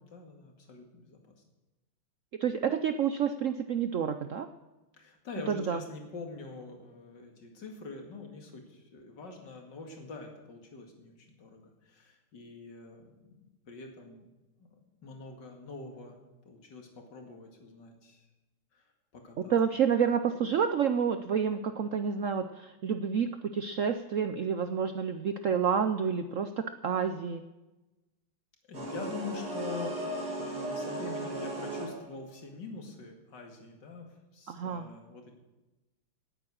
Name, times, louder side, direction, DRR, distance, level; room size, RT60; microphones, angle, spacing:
voice 1, 0.1-1.3 5.0-13.4 13.7-14.3 15.0-16.2 16.4-18.2 18.7-18.8 19.1-19.6 28.7-30.0 30.4-35.3, left 4 dB, 60° left, 2 dB, 2.9 m, -44 dB
voice 2, 2.4-4.5 5.5-5.8 19.5-27.4 34.5-34.9, right 7 dB, 80° right, 9 dB, 0.7 m, -29 dB
sound 1, 28.7-32.2, right 1 dB, 50° right, 3.9 m, -36 dB
18.5 x 9.0 x 6.4 m, 1.0 s
omnidirectional pair, 2.2 m